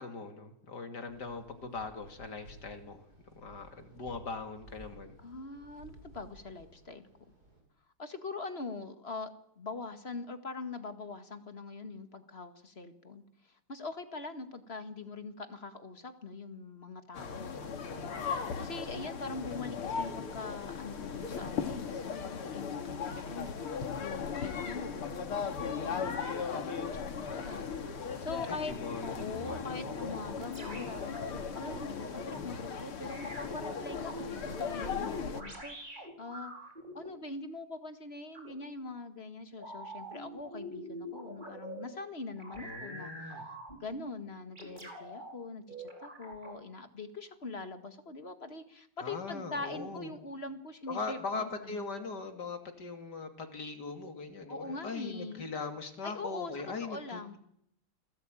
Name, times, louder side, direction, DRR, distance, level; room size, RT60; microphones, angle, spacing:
voice 1, 0.0-3.0 3.4-5.2 28.4-30.2 42.6-43.5 49.0-50.1 50.9-57.4, left 4 dB, 50° left, 6 dB, 3.2 m, -40 dB
sound 1, 1.1-7.6, right 1 dB, 45° right, 8.2 m, -56 dB
voice 2, 5.2-7.1 8.0-9.3 9.6-28.8 29.0-32.0 32.3-36.5 36.9-51.8 54.5-55.7 56.0-57.4, left 3 dB, 30° left, 8 dB, 1.9 m, -43 dB
sound 2, 17.1-35.4, left 6 dB, 80° left, 3.0 m, -37 dB
sound 3, 29.3-32.3 33.1-37.1 38.3-38.5 39.6-41.9 42.4-44.1 44.5-45.3 45.7-46.6, right 1 dB, 20° right, 5.2 m, -45 dB
29.5 x 20.0 x 9.2 m, 0.74 s
omnidirectional pair, 2.4 m